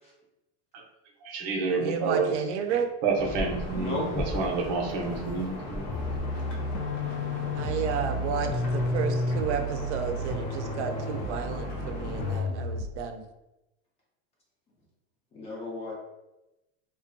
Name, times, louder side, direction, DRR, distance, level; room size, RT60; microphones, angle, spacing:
voice 1, 1.2-2.3 3.0-5.8, right 4 dB, 45° right, 0 dB, 0.6 m, -29 dB
voice 2, 1.8-2.9 7.5-13.2, right 6 dB, 85° right, 5 dB, 0.5 m, -32 dB
sound 1, 3.2-12.4, left 1 dB, 60° left, 0.9 m, -37 dB
voice 3, 3.7-4.1 15.3-15.9, left 1 dB, 20° left, -4 dB, 0.5 m, -34 dB
sound 2, 5.9-13.0, left 1 dB, 85° left, 0.5 m, -32 dB
2.4 x 2.2 x 2.5 m, 0.95 s
supercardioid pair, 150°, 34 cm